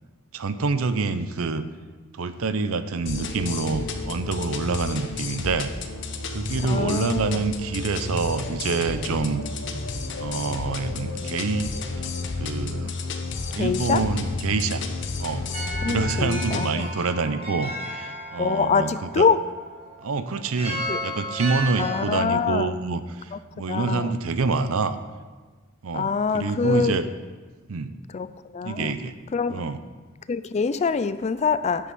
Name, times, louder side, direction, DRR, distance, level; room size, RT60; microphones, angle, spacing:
voice 1, 0.3-1.7 2.1-5.7 6.3-9.4 10.2-11.7 12.0-12.1 12.4-12.9 13.5-14.8 15.2-15.5 15.9-19.3 20.0-23.3 23.6-25.0 25.8-27.0 27.7-27.9 28.6-29.1 29.5-29.8, right 4 dB, 80° right, 12 dB, 0.6 m, -27 dB
sound 1, 3.1-16.7, left 3 dB, 55° left, 0.9 m, -31 dB
voice 2, 6.7-7.4 13.6-14.0 15.8-16.9 18.4-19.4 20.9-21.0 21.8-22.8 23.3-23.4 23.7-24.2 25.9-27.0 28.1-28.9 29.3-29.7 30.3-31.9, left 5 dB, 30° left, 14 dB, 0.3 m, -25 dB
sound 2, 15.5-22.0, right 1 dB, 30° right, 1.6 m, -34 dB
9.9 x 7.7 x 5.5 m, 1.4 s
head